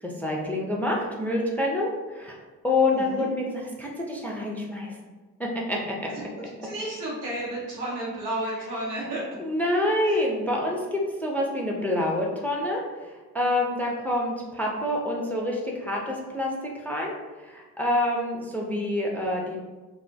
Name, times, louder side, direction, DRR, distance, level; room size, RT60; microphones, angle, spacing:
voice 1, 0.0-2.4 2.6-3.4 3.8-5.0 5.4-6.1 9.4-19.6, left 1 dB, 5° left, -2 dB, 0.4 m, -27 dB
voice 2, 2.9-3.2 6.1-6.2 6.6-9.2 10.0-10.2, right 1 dB, 85° right, -6 dB, 0.8 m, -32 dB
2.3 x 2.1 x 2.5 m, 1.3 s
hypercardioid pair, 40°, 47 cm